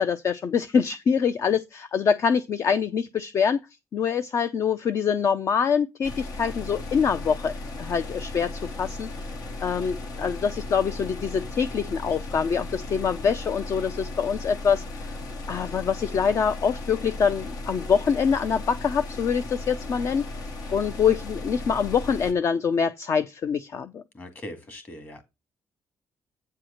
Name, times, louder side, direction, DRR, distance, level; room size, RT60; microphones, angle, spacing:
voice 1, 0.0-3.6 3.9-9.1 9.6-15.1 15.5-20.2 20.7-24.0, left 6 dB, 50° left, 0.6 m, -25 dB
sound 1, 6.0-22.3, left 2 dB, 75° left, 1.9 m, -36 dB
voice 2, 24.1-25.2, left 1 dB, 30° left, 2.0 m, -40 dB
8.6 x 4.7 x 6.4 m
wide cardioid pair, 160°, 6 cm